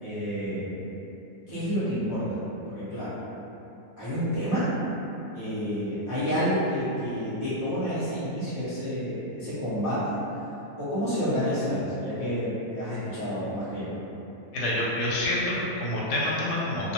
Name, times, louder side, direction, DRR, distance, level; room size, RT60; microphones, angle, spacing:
voice 1, 0.0-0.9 1.5-3.2 4.0-4.7 5.3-10.1 10.8-14.0, equal, 20° right, -16 dB, 0.5 m, -29 dB
voice 2, 14.5-16.9, left 1 dB, 80° left, -6 dB, 1.1 m, -27 dB
2.5 x 2.2 x 2.9 m, 3.0 s
omnidirectional pair, 1.7 m